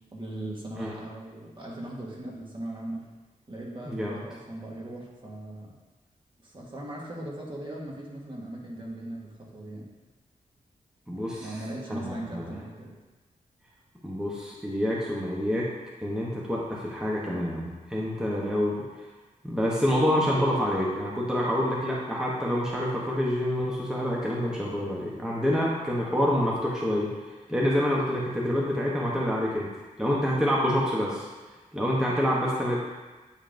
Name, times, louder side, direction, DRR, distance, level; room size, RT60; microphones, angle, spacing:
voice 1, 0.1-3.0 3.5-5.7 6.4-9.8 11.4-12.9, right 1 dB, 35° right, -3 dB, 1.3 m, -38 dB
voice 2, 11.1-11.6 11.9-12.5 14.0-15.7 16.0-18.8 19.4-27.1 27.5-29.7 30.0-31.3 31.7-32.8, equal, 5° right, -5 dB, 0.8 m, -27 dB
8.7 x 5.2 x 2.5 m, 1.2 s
wide cardioid pair, 125°, 14 cm